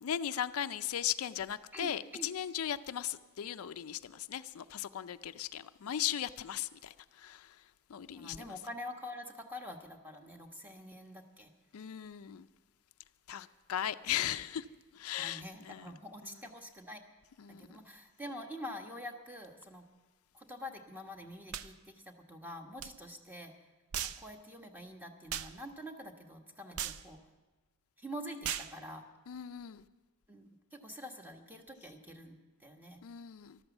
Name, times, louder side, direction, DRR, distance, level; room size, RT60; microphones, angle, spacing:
voice 1, 0.0-7.6 7.9-8.5 11.7-12.5 13.3-14.6 14.9-16.0 17.4-17.8 29.3-29.8 33.0-33.6, left 10 dB, 85° left, 12 dB, 0.4 m, -37 dB
voice 2, 1.7-2.3 8.1-11.5 14.1-14.3 15.2-17.0 17.6-19.8 20.3-23.5 24.0-27.2 28.0-29.1 30.3-33.0, equal, 10° right, 3 dB, 1.3 m, -46 dB
sound 1, 21.5-21.7 22.8-22.9 23.9-24.2 25.3-25.5 26.8-27.0 28.4-28.7, right 9 dB, 85° right, 0.6 m, -37 dB
13.5 x 12.5 x 7.1 m, 1.2 s
head